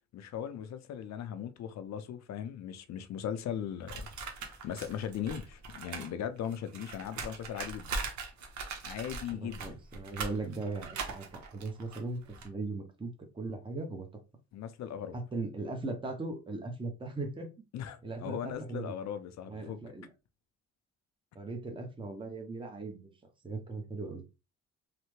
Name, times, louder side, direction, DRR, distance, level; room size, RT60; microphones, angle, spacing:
voice 1, 0.1-4.1 4.3-8.0 8.8-9.8 14.5-15.2 17.7-19.8, left 9 dB, 65° left, 0.5 m, -38 dB
sound 1, 3.9-6.1 6.4-12.5, right 4 dB, 70° right, 0.9 m, -41 dB
voice 2, 9.3-14.2 15.3-17.5 18.0-19.0 19.5-20.1 21.3-23.1 23.4-24.2, right 3 dB, 15° right, 0.7 m, -39 dB
3.3 x 2.1 x 3.1 m
cardioid pair, 90°, 30 cm